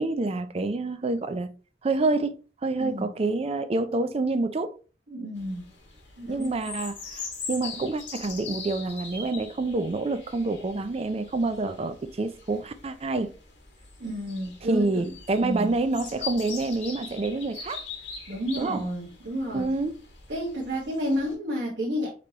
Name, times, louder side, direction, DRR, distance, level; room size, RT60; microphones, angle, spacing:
voice 1, 0.0-1.5 1.8-2.3 2.6-4.7 6.3-13.3 14.7-17.8 18.6-18.8 19.5-19.9, right 3 dB, 35° right, 0.4 m, -27 dB
voice 2, 2.8-3.1 5.1-5.7 6.2-6.5 14.0-15.1 15.4-15.7 18.3-19.7 20.3-22.1, equal, 65° right, 1.1 m, -31 dB
sound 1, 5.3-21.3, left 5 dB, 80° left, 1.5 m, -42 dB
5.2 x 3.3 x 2.8 m
head